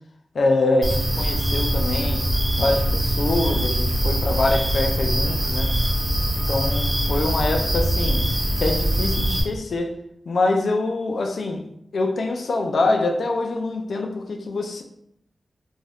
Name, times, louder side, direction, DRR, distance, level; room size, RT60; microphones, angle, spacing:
voice 1, 0.3-2.3 2.5-5.7 6.5-8.3 8.6-10.0 10.3-11.7 11.9-14.8, left 2 dB, 85° left, 0.4 m, -24 dB
sound 1, 0.8-9.4, right 1 dB, 30° right, 1.1 m, -22 dB
2.6 x 2.3 x 3.3 m
wide cardioid pair, 90°, 0 cm